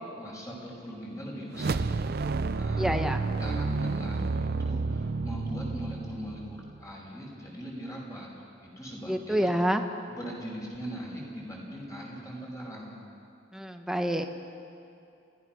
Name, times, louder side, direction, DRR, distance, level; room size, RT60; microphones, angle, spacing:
voice 1, 0.2-8.3 8.6-9.5 10.1-13.0, equal, 20° left, -3 dB, 5.6 m, -40 dB
sound 1, 1.5-6.9, right 3 dB, 55° right, 0.5 m, -30 dB
voice 2, 2.8-3.2 9.1-9.8 13.5-14.2, equal, 5° right, 5 dB, 1.1 m, -27 dB
29.0 x 17.0 x 6.1 m, 2.7 s
head